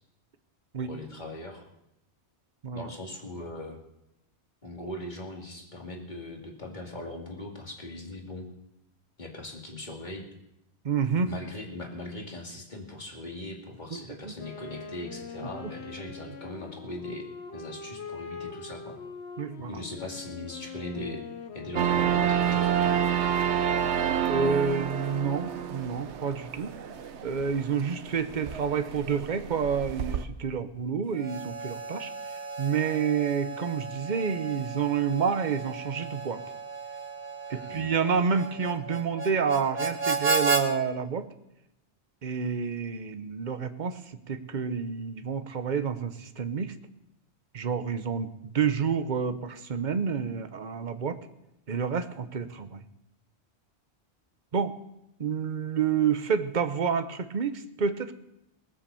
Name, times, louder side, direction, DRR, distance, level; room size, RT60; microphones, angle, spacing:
voice 1, 0.8-1.6 2.7-3.8 4.6-8.5 9.2-10.3 11.2-17.3 17.5-19.0 19.6-21.3 21.5-22.9 37.5-37.9, left 1 dB, 45° left, 0 dB, 2.6 m, -40 dB
voice 2, 10.8-11.3 13.9-14.3 15.4-15.5 19.4-19.8 24.3-26.7 27.2-32.1 32.6-36.4 37.5-41.3 42.2-44.0 44.3-46.7 47.5-51.2 51.7-52.8 54.5-54.7 55.2-58.1, right 6 dB, 45° right, 10 dB, 1.0 m, -29 dB
Wind instrument woodwind instrument, 14.3-22.7, left 5 dB, 70° left, 1.3 m, -42 dB
sound 1, 21.7-30.2, right 9 dB, 90° right, 1.1 m, -29 dB
Harmonica, 31.1-40.7, right 3 dB, 65° right, 1.7 m, -33 dB
19.5 x 7.9 x 7.0 m, 0.85 s
omnidirectional pair, 1.1 m